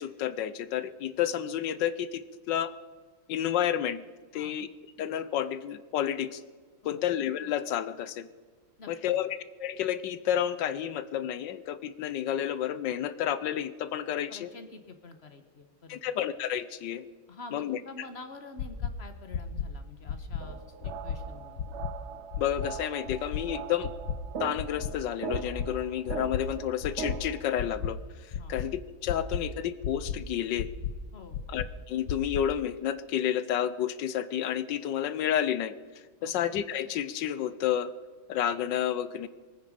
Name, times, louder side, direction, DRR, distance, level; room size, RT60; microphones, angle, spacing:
voice 1, 0.0-2.7 3.3-4.0 4.3-4.7 5.0-6.4 6.8-8.3 8.9-9.3 9.6-14.5 15.9-17.1 17.5-17.8 22.4-23.9 24.4-28.0 28.5-30.7 31.5-35.7 36.2-37.9 38.3-39.3, left 10 dB, 70° left, 14 dB, 1.2 m, -30 dB
voice 2, 8.8-9.2 14.3-16.1 17.3-21.6 28.4-28.5 31.1-31.4 36.2-36.3, left 3 dB, 35° left, 8 dB, 1.1 m, -47 dB
sound 1, 18.6-18.9 19.3-19.7 20.1-20.4 20.8-21.2 21.6-21.9 22.3-22.7 23.1-23.4 23.8-24.2 24.6-24.9 25.3-25.7 26.1-26.4 26.8-27.2 27.6-27.9 28.3-28.7 29.1-29.4 29.8-30.2 30.6-30.9 31.3-31.7 32.1-32.4, left 8 dB, 85° left, 1.8 m, -32 dB
sound 2, 20.4-27.4, right 6 dB, 55° right, 0.7 m, -40 dB
23.5 x 9.5 x 5.1 m, 1.4 s
omnidirectional pair, 2.4 m